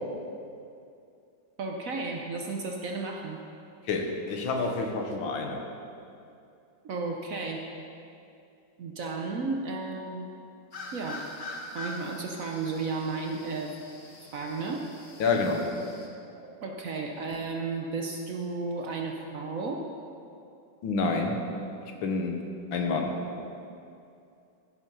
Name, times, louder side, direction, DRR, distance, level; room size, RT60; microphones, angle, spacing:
voice 1, 1.6-3.4 6.8-7.6 8.8-10.4 10.9-11.3 11.7-13.7 14.3-14.9 16.4-19.9, right 3 dB, 60° right, 2 dB, 1.0 m, -33 dB
voice 2, 3.9-5.6 15.2-15.6 20.8-21.4 22.0-22.4 22.7-23.2, left 3 dB, 90° left, 3 dB, 1.9 m, -28 dB
sound 1, 10.7-16.1, left 2 dB, 45° left, 1.4 m, -43 dB
14.5 x 6.0 x 5.5 m, 2.6 s
omnidirectional pair, 2.1 m